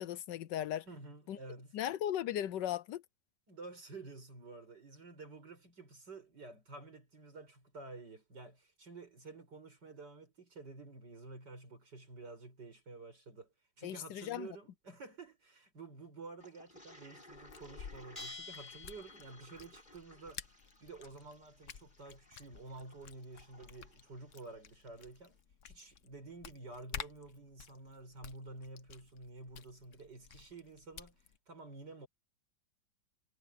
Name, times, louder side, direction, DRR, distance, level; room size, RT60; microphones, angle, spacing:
voice 1, 0.0-0.8 1.3-1.4 1.7-3.0 13.8-14.5, left 11 dB, 75° left, 1.3 m, -37 dB
voice 2, 0.9-1.8 3.5-20.4 20.8-32.1, right 3 dB, 65° right, 6.8 m, -51 dB
Toilet flush, 16.4-25.0, left 1 dB, 25° left, 7.8 m, -60 dB
sound 1, 17.3-31.4, left 8 dB, 50° left, 1.1 m, -52 dB
Bell, 18.1-19.7, left 3 dB, 5° left, 4.3 m, -49 dB
omnidirectional pair, 2.0 m